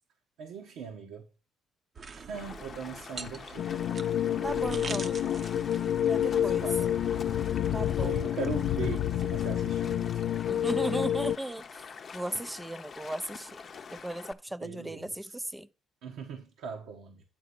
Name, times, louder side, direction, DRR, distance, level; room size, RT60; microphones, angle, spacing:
voice 1, 0.4-1.3 2.1-3.8 6.0-7.1 8.0-10.3 14.6-15.1 16.0-17.2, right 6 dB, 80° right, 1.3 m, -40 dB
sound 1, 1.9-7.8, right 4 dB, 40° right, 0.8 m, -44 dB
Stream, 2.3-14.3, left 6 dB, 45° left, 0.7 m, -46 dB
sound 2, 3.6-11.4, left 10 dB, 70° left, 0.4 m, -29 dB
voice 2, 4.4-5.3 6.1-6.7 7.7-8.3 10.5-15.7, right 1 dB, 10° right, 0.5 m, -36 dB
9.4 x 4.1 x 6.9 m
cardioid pair, 90°, 0 cm